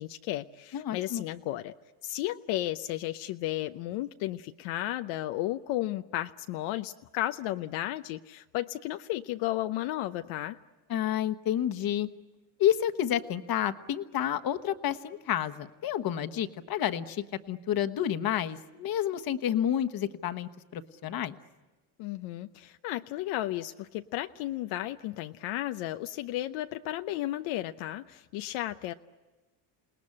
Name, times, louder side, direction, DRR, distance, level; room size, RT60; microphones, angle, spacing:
voice 1, 0.0-1.7 2.0-10.6 22.0-28.9, left 15 dB, 80° left, 8 dB, 0.8 m, -34 dB
voice 2, 0.7-1.2 10.9-12.1 12.6-21.4, left 10 dB, 45° left, 8 dB, 1.3 m, -30 dB
28.5 x 19.0 x 9.8 m, 1.2 s
cardioid pair, 120°, 48 cm